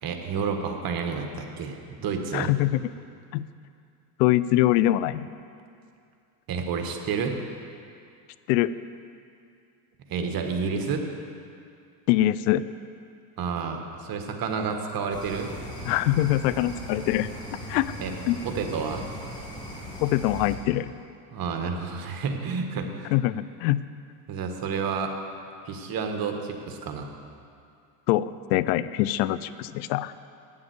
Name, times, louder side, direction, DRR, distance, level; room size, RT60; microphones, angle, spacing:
voice 1, 0.0-2.5 6.5-7.4 10.1-11.1 13.4-15.5 18.0-18.1 18.4-19.1 21.3-23.1 24.3-25.1 25.6-27.1, right 5 dB, 45° right, 4 dB, 1.4 m, -30 dB
voice 2, 2.3-2.8 3.3-3.4 4.2-5.3 8.5-8.7 12.1-12.6 15.9-17.3 17.7-17.9 18.3-18.4 20.0-20.9 23.1-23.8 28.1-30.1, left 14 dB, 85° left, 16 dB, 0.6 m, -23 dB
sound 1, 15.1-20.6, equal, 10° left, 2.4 m, -38 dB
9.3 x 7.4 x 7.9 m, 2.4 s
supercardioid pair, 95°, 48 cm